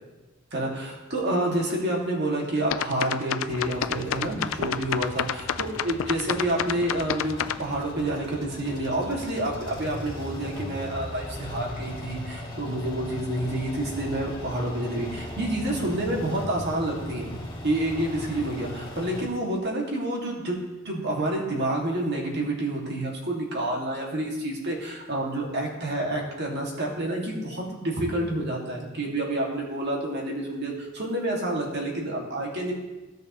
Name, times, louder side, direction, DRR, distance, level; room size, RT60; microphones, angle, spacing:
voice 1, 0.5-17.3 17.6-20.6 20.8-32.7, right 1 dB, 55° right, -2 dB, 2.1 m, -28 dB
sound 1, 2.7-7.6, left 9 dB, 80° left, 0.4 m, -28 dB
sound 2, 3.5-19.3, left 1 dB, 25° left, 2.5 m, -38 dB
15.5 x 6.4 x 3.1 m, 1.1 s
head